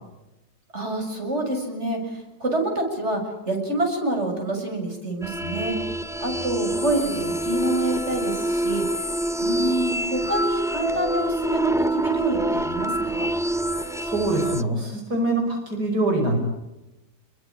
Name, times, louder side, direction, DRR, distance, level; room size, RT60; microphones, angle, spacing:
voice 1, 0.7-3.2 3.5-5.8 6.2-9.0 9.4-13.3, right 1 dB, 40° right, 3 dB, 7.1 m, -27 dB
sound 1, 5.2-14.6, right 1 dB, 5° right, 0.4 m, -26 dB
voice 2, 13.7-16.4, right 2 dB, 65° right, 2 dB, 6.0 m, -24 dB
30.0 x 22.5 x 8.5 m, 0.97 s
omnidirectional pair, 1.9 m